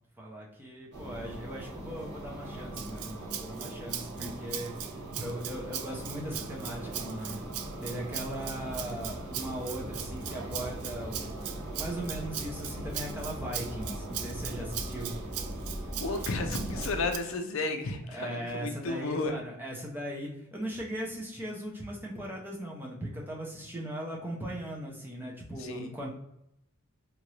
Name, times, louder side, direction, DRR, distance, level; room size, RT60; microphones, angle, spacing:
voice 1, 0.2-4.7 5.2-7.4 7.8-11.3 11.7-15.2 18.1-26.1, equal, 10° right, -3 dB, 0.6 m, -38 dB
sound 1, 0.9-17.1, right 1 dB, 50° right, 1.0 m, -40 dB
Rattle (instrument), 2.8-17.2, right 10 dB, 80° right, 0.3 m, -40 dB
voice 2, 16.0-19.3 25.6-25.9, left 3 dB, 60° left, 5 dB, 0.5 m, -33 dB
2.9 x 2.5 x 3.0 m, 0.81 s
head